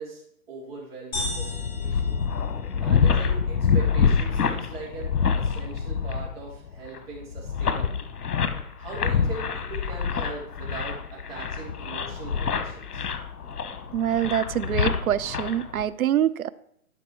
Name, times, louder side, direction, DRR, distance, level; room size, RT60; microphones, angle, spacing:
voice 1, 0.0-2.1 2.7-8.1 8.8-13.1, right 3 dB, 40° right, -4 dB, 3.6 m, -40 dB
sound 1, 1.1-15.8, left 6 dB, 85° left, 1.1 m, -26 dB
sound 2, 1.1-3.1, equal, 20° left, 3.0 m, -36 dB
voice 2, 13.9-16.5, right 10 dB, 70° right, 18 dB, 0.5 m, -25 dB
11.5 x 5.2 x 4.5 m, 0.72 s
hypercardioid pair, 165°, 45 cm